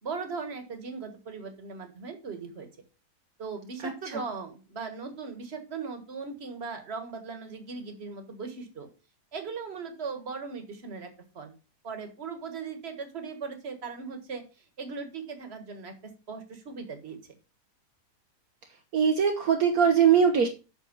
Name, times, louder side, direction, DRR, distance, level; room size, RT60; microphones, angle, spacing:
voice 1, 0.0-2.7 3.4-8.9 9.3-11.5 11.8-17.2, right 5 dB, 40° right, 6 dB, 1.8 m, -38 dB
voice 2, 3.8-4.2 18.9-20.5, right 7 dB, 65° right, 4 dB, 1.4 m, -22 dB
8.1 x 6.2 x 5.4 m, 0.32 s
omnidirectional pair, 1.7 m